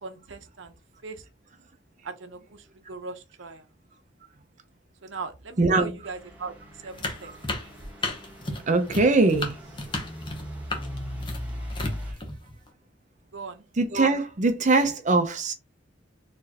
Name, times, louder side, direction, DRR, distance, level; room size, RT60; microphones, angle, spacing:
voice 1, 0.0-0.7 1.0-1.2 2.0-3.7 5.0-6.5 6.8-7.3 13.3-13.6, right 4 dB, 75° right, 0.7 m, -39 dB
voice 2, 5.6-5.9 8.7-9.6 13.8-15.5, right 3 dB, 40° right, 0.6 m, -21 dB
Truck / Idling, 6.0-12.1, equal, 10° right, 1.4 m, -39 dB
sound 1, 7.0-12.7, left 2 dB, 25° left, 0.9 m, -33 dB
4.3 x 3.2 x 2.9 m
head